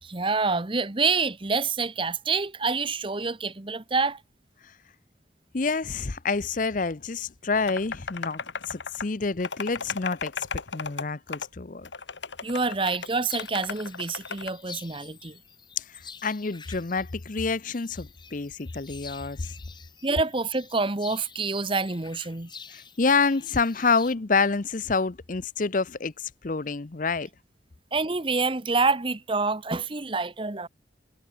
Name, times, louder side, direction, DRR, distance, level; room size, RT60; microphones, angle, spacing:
voice 1, 0.0-4.2 12.4-15.4 20.0-22.5 27.9-30.7, right 4 dB, 30° right, 1.0 m, -27 dB
voice 2, 5.5-11.9 15.8-19.5 22.7-27.3, left 4 dB, 45° left, 0.7 m, -28 dB
sound 1, 7.7-9.0 9.4-11.0 11.3-11.5 11.8-14.5, left 5 dB, 80° left, 1.7 m, -35 dB
sound 2, 12.9-24.1, left 6 dB, 25° left, 6.7 m, -47 dB
head